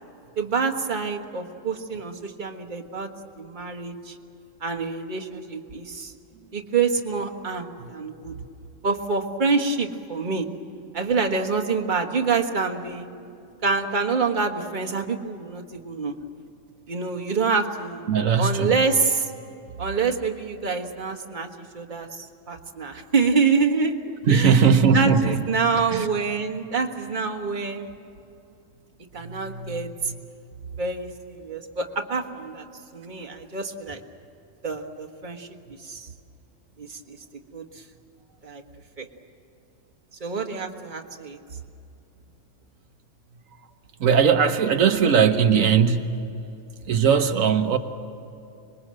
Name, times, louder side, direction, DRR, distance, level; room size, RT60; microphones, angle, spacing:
voice 1, 0.4-3.1 3.4-4.1 4.6-6.1 6.5-8.3 8.8-10.5 10.9-13.1 13.6-16.1 16.9-18.0 18.3-19.3 19.8-21.5 21.7-23.9 24.3-27.9 29.1-29.9 30.8-32.6 32.9-34.0 34.6-35.5 35.8-36.1 36.8-37.2 37.5-37.6 38.4-38.6 39.0-39.1 40.2-41.4, right 4 dB, 40° right, 3 dB, 1.6 m, -26 dB
voice 2, 18.1-18.7 24.3-25.5 25.9-26.1 29.2-30.2 44.0-46.1 46.9-47.8, right 6 dB, 90° right, 6 dB, 1.4 m, -20 dB
26.0 x 21.5 x 7.6 m, 2.7 s
omnidirectional pair, 1.3 m